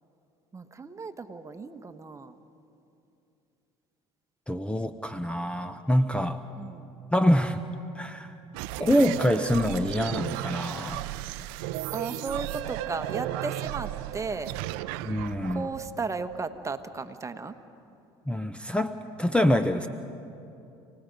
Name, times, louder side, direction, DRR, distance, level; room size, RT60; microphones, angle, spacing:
voice 1, 0.5-2.4 6.6-6.9 11.9-14.5 15.5-17.5, right 4 dB, 25° right, 8 dB, 1.2 m, -35 dB
voice 2, 4.5-6.4 7.1-7.6 8.0-8.3 8.8-11.1 15.0-15.7 18.3-19.9, equal, 10° left, 10 dB, 0.8 m, -25 dB
sound 1, 8.5-16.8, right 15 dB, 80° right, 0.6 m, -35 dB
30.0 x 18.5 x 5.3 m, 2.7 s
supercardioid pair, 75°, 13 cm